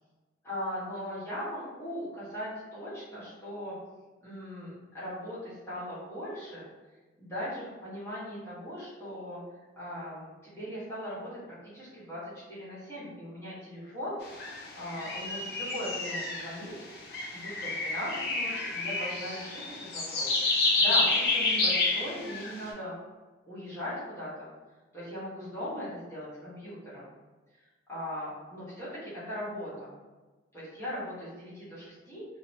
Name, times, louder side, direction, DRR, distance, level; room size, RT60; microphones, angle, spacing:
voice 1, 0.4-3.8 4.2-6.7 7.2-9.4 9.8-11.4 11.7-14.2 14.7-16.7 17.3-23.0 23.5-24.5 24.9-27.1 27.9-29.9 30.5-32.3, equal, 15° left, -11 dB, 1.1 m, -39 dB
sound 1, 14.3-16.6 17.1-22.6, left 3 dB, 55° left, 0.5 m, -29 dB
2.8 x 2.1 x 2.7 m, 1.2 s
head